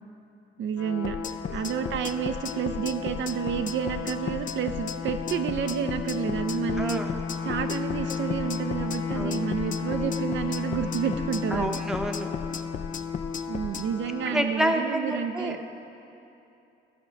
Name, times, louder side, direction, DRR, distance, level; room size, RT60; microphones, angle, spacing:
voice 1, 0.6-1.2 1.5-7.0 7.4-11.8 13.5-15.6, right 8 dB, 70° right, 7 dB, 0.6 m, -30 dB
sound 1, 0.8-14.5, left 6 dB, 90° left, 0.7 m, -34 dB
sound 2, 1.0-13.9, left 6 dB, 40° left, 0.5 m, -36 dB
Trumpet, 6.7-11.7, left 4 dB, 65° left, 1.4 m, -43 dB
voice 2, 6.8-7.1 9.1-9.4 11.5-12.3 14.3-15.6, equal, 5° right, 3 dB, 0.8 m, -29 dB
14.0 x 6.1 x 5.3 m, 2.8 s
cardioid pair, 90°, 20 cm